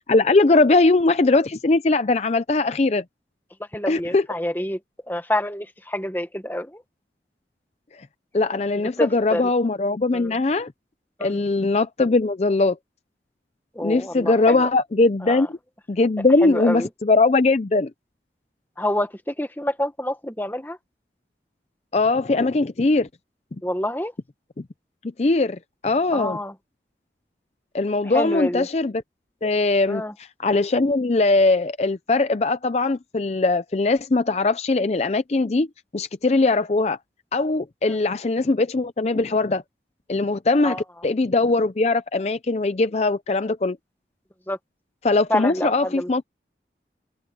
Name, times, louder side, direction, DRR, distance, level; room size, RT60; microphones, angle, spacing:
voice 1, 0.1-3.0 3.9-4.3 8.3-10.7 11.2-12.8 13.8-15.6 15.9-17.9 21.9-23.1 25.2-26.4 27.7-29.0 29.4-35.7 35.9-37.0 37.3-39.6 40.1-43.8 45.0-46.2, left 3 dB, 35° left, 0.5 m, -20 dB
voice 2, 3.7-4.8 5.1-6.8 9.0-9.4 10.1-10.3 11.2-11.4 13.7-14.7 15.2-15.5 16.4-16.9 18.8-20.8 23.6-24.1 26.1-26.5 28.1-28.7 29.9-30.1 37.9-38.0 40.6-40.8 44.5-44.6 45.3-46.1, left 1 dB, 10° left, 1.4 m, -27 dB
head